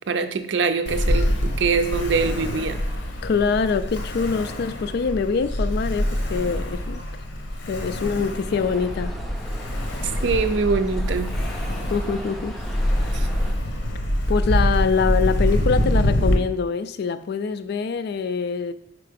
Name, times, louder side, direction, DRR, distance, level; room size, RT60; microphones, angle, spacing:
voice 1, 0.1-2.8 10.2-11.4 13.1-13.3, right 4 dB, 70° right, 0.5 m, -23 dB
Ocean, 0.9-16.3, equal, 75° left, 0.9 m, -25 dB
voice 2, 3.2-7.0 7.7-9.2 11.9-12.6 14.3-18.7, left 5 dB, 60° left, 0.3 m, -24 dB
sound 1, 8.5-13.5, equal, ahead, 0.6 m, -38 dB
4.8 x 4.6 x 5.0 m
head